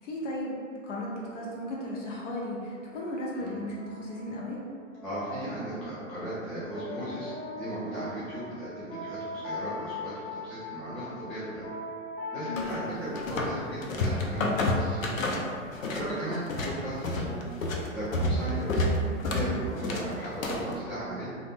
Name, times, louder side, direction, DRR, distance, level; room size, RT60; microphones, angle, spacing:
voice 1, 0.0-4.6 12.4-12.7, left 1 dB, 65° left, -4 dB, 0.9 m, -35 dB
sound 1, 2.4-19.8, left 2 dB, 25° left, 0.7 m, -43 dB
voice 2, 5.0-11.7 12.3-15.1 15.9-17.4 17.9-18.9 19.2-21.3, right 1 dB, ahead, -12 dB, 0.3 m, -36 dB
sound 2, 12.6-13.6 13.8-16.1 16.3-20.7, left 1 dB, 85° left, 0.6 m, -29 dB
2.5 x 2.1 x 3.4 m, 2.1 s
hypercardioid pair, 115°, 39 cm